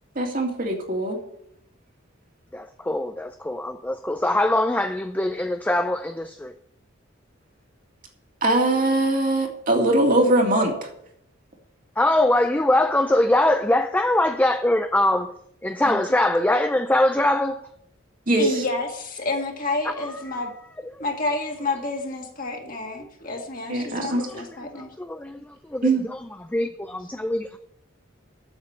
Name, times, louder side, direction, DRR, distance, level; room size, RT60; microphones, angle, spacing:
voice 1, 0.2-1.2 8.4-10.7 15.9-16.0 18.3-18.6 23.7-24.2 25.8-26.1, right 1 dB, 45° right, 2.3 m, -21 dB
voice 2, 2.5-6.5 12.0-15.3 15.6-17.6 20.0-20.4 20.9-21.0 24.1-24.4 24.8-27.6, left 1 dB, 10° left, 0.4 m, -23 dB
voice 3, 18.3-20.5 21.0-24.9, left 2 dB, 40° left, 2.0 m, -29 dB
8.1 x 7.3 x 8.5 m
head